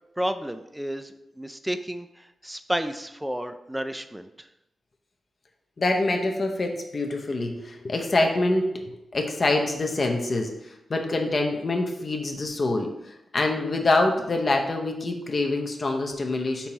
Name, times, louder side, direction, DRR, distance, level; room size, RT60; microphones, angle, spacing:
voice 1, 0.2-4.5, equal, 5° right, 9 dB, 0.3 m, -31 dB
voice 2, 5.8-16.7, left 2 dB, 45° left, 2 dB, 0.6 m, -25 dB
5.3 x 2.9 x 2.7 m, 0.88 s
cardioid pair, 75°, 0 cm